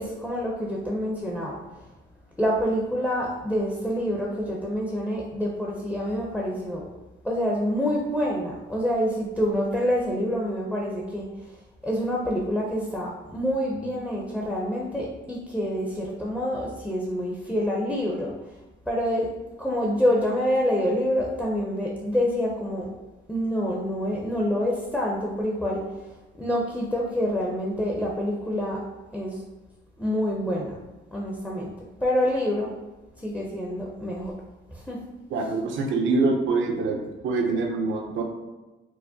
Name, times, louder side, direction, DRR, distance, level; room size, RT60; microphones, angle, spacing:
voice 1, 0.0-1.6 2.4-6.8 7.2-11.2 11.8-18.3 18.9-19.3 19.6-22.9 23.3-25.8 26.3-28.8 29.1-29.4 30.0-30.8 31.1-31.7 32.0-32.7 33.2-34.3 34.7-35.0, equal, 5° left, -2 dB, 0.6 m, -27 dB
voice 2, 35.3-38.2, right 3 dB, 75° right, 2 dB, 0.6 m, -25 dB
4.7 x 2.0 x 2.7 m, 1.1 s
cardioid pair, 90°, 20 cm